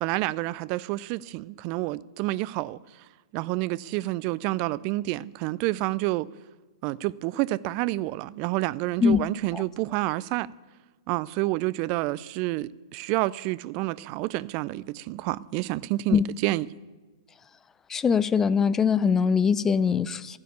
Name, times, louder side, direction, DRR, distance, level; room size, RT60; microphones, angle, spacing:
voice 1, 0.0-2.8 3.3-6.3 6.8-10.5 11.1-16.7, right 18 dB, 40° right, 0.4 m, -29 dB
voice 2, 17.9-20.4, left 6 dB, 15° left, 0.5 m, -22 dB
13.5 x 9.5 x 8.6 m
figure-of-eight pair, 110°, 3 cm